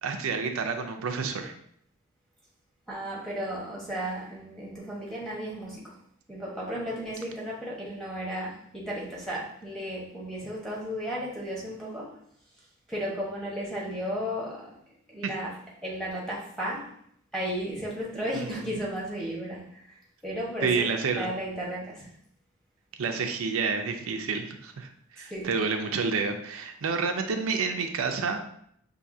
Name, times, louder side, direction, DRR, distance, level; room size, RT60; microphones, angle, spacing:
voice 1, 0.0-1.5 18.3-18.5 20.6-21.3 23.0-28.4, right 5 dB, 85° right, 5 dB, 0.5 m, -29 dB
voice 2, 2.9-6.0 6.3-12.2 12.9-14.8 15.1-16.9 17.3-20.9 21.2-22.1 25.2-25.5, equal, ahead, -6 dB, 1.1 m, -34 dB
5.7 x 2.7 x 2.7 m, 0.67 s
head